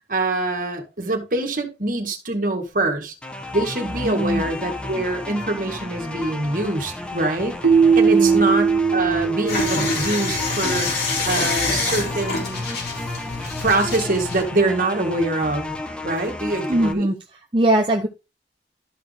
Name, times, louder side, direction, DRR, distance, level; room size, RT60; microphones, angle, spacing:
voice 1, 0.1-3.1 3.5-7.6 8.0-12.6 13.6-15.7 16.0-17.1, right 2 dB, 50° right, 2.1 m, -24 dB
sound 1, 3.2-16.9, left 2 dB, 5° left, 1.1 m, -33 dB
voice 2, 4.0-4.5 8.1-8.4 16.7-18.1, right 1 dB, 30° right, 0.8 m, -21 dB
Keyboard (musical), 7.6-10.5, right 6 dB, 75° right, 1.0 m, -19 dB
sound 2, 9.5-14.4, left 3 dB, 65° left, 4.1 m, -26 dB
13.0 x 5.0 x 3.5 m
head